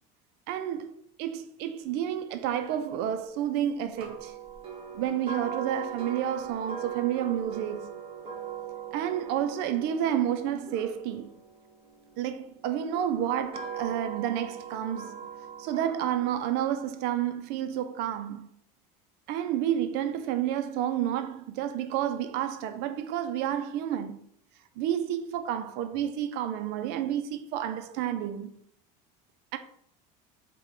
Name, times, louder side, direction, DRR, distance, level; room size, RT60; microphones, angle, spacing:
voice 1, 0.5-4.4 4.9-8.0 8.9-11.3 12.2-15.2 15.6-18.6 19.3-24.2 24.8-28.6 29.5-29.6, right 10 dB, 65° right, 0.4 m, -30 dB
sound 1, 4.0-12.1 12.9-16.3, right 8 dB, 30° right, 0.9 m, -40 dB
4.2 x 2.2 x 3.7 m
cardioid pair, 130°, 18 cm